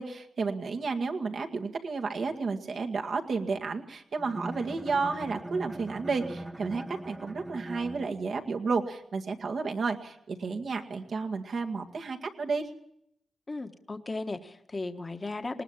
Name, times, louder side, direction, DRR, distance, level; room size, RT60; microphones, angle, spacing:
voice 1, 0.0-12.7, right 4 dB, 70° right, 3 dB, 2.1 m, -32 dB
Bowed string instrument, 4.2-8.5, right 1 dB, 20° right, 1.0 m, -41 dB
voice 2, 13.5-15.6, left 2 dB, 35° left, 7 dB, 1.5 m, -36 dB
19.5 x 19.0 x 7.4 m, 0.75 s
cardioid pair, 55°, 0 cm